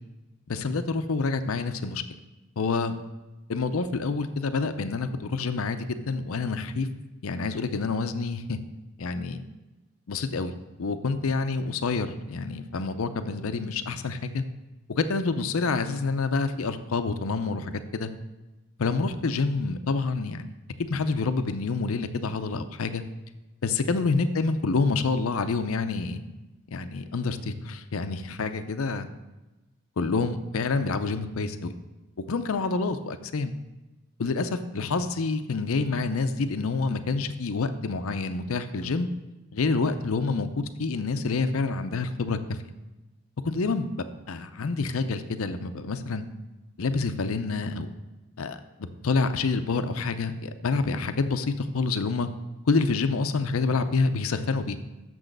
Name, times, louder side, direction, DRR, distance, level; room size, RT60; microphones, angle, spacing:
voice 1, 0.5-2.0 2.6-3.0 3.5-6.9 7.2-8.6 9.0-9.4 10.1-10.5 10.8-14.4 14.9-18.1 18.8-20.5 20.8-23.0 23.6-26.2 26.7-29.1 30.0-31.7 32.3-33.5 34.2-39.1 39.5-42.6 43.4-43.9 44.3-46.2 46.8-47.9 48.4-52.3 52.7-54.8, left 4 dB, 85° left, 10 dB, 0.6 m, -27 dB
6.9 x 6.2 x 6.6 m, 1.1 s
head